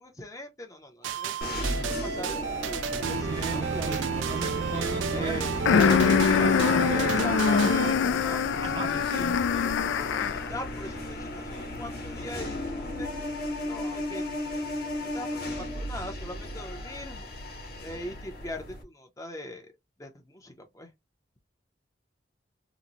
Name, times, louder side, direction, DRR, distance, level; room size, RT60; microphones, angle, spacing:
voice 1, 0.0-1.3 1.8-5.5 6.9-9.1 10.5-14.2 15.0-17.3 17.8-19.7 20.0-20.9, left 1 dB, 15° left, 0.6 m, -41 dB
sound 1, 1.0-7.9, right 6 dB, 90° right, 0.4 m, -31 dB
sound 2, 1.4-18.8, left 1 dB, 55° left, 1.0 m, -36 dB
voice 2, 3.2-7.4 8.6-9.4, right 2 dB, 25° right, 0.5 m, -37 dB
sound 3, 5.7-10.6, left 6 dB, 85° left, 0.3 m, -23 dB
2.9 x 2.1 x 3.9 m
head